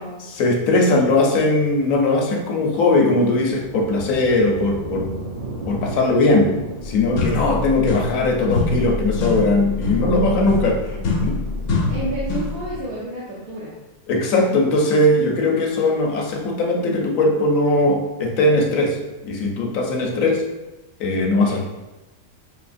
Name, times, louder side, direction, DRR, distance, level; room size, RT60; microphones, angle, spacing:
voice 1, 0.4-5.1 5.7-6.6 6.8-10.8 11.2-11.4 14.1-19.0 19.2-20.5 21.0-21.6, left 2 dB, 65° left, 1 dB, 1.1 m, -19 dB
sound 1, 1.4-12.9, right 2 dB, 90° right, 2.0 m, -36 dB
voice 2, 5.8-6.4 7.4-7.5 10.2-10.4 10.9-11.0 11.9-13.8 14.4-14.5 21.4-21.6, right 1 dB, 70° right, -6 dB, 1.3 m, -32 dB
sound 2, 6.8-6.9 7.2-8.3 8.5-12.6, left 3 dB, 90° left, 1.2 m, -24 dB
5.7 x 2.7 x 2.5 m, 1.0 s
omnidirectional pair, 1.6 m